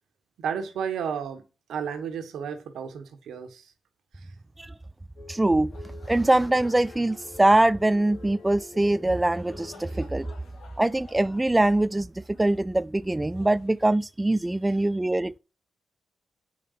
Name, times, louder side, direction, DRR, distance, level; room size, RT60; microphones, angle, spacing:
voice 1, 0.4-1.4 1.7-3.7 9.9-10.0, right 7 dB, 85° right, 1.5 m, -32 dB
sound 1, 5.2-10.3, left 3 dB, 50° left, 3.0 m, -47 dB
voice 2, 5.3-5.7 6.1-10.3 10.8-15.4, right 1 dB, 15° right, 0.4 m, -23 dB
sound 2, 5.6-14.6, left 4 dB, 80° left, 2.7 m, -55 dB
8.6 x 5.3 x 5.7 m
cardioid pair, 65°, 0 cm